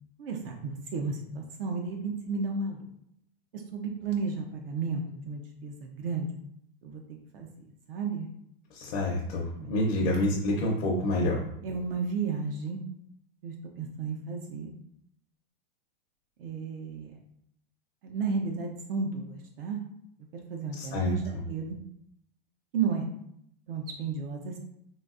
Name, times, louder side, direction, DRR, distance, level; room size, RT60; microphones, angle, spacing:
voice 1, 0.2-2.8 3.5-6.3 6.8-7.0 7.3-7.5 7.9-8.3 9.5-9.7 10.0-10.1 11.6-12.8 13.4-14.7 16.4-17.2 18.0-19.8 20.3-21.8 22.7-23.1 23.7-24.6, right 5 dB, 65° right, 2 dB, 0.5 m, -33 dB
voice 2, 8.7-11.4 20.8-21.1, left 1 dB, 45° left, -2 dB, 0.7 m, -28 dB
3.9 x 2.2 x 2.4 m, 0.73 s
supercardioid pair, 160°, 31 cm